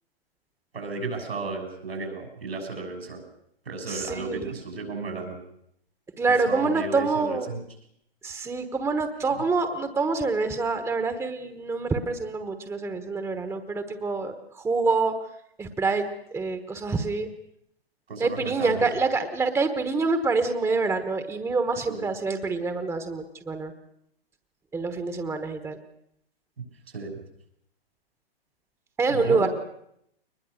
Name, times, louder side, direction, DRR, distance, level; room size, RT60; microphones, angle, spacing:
voice 1, 0.7-3.2 3.6-5.4 6.3-7.6 9.3-9.4 18.1-18.9 21.8-22.1 26.9-27.2 29.1-29.5, right 3 dB, 80° right, 5 dB, 6.6 m, -34 dB
voice 2, 3.9-4.5 6.2-7.6 8.2-15.1 15.6-17.3 18.2-23.7 24.7-25.8 29.0-29.5, right 3 dB, 10° right, 9 dB, 1.2 m, -26 dB
22.0 x 20.5 x 6.5 m, 0.72 s
hypercardioid pair, 120°, 30 cm